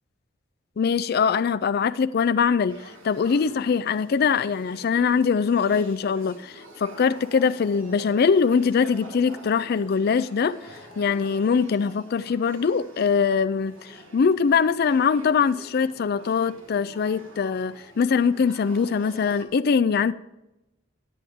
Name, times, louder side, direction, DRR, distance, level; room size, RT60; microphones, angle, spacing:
voice 1, 0.8-2.8 3.0-10.6 11.0-20.1, left 6 dB, 50° left, 0.4 m, -22 dB
Male speech man speaking / Child speech kid speaking / Conversation, 2.7-19.4, right 2 dB, 80° right, 1.6 m, -47 dB
10.0 x 9.2 x 3.6 m
head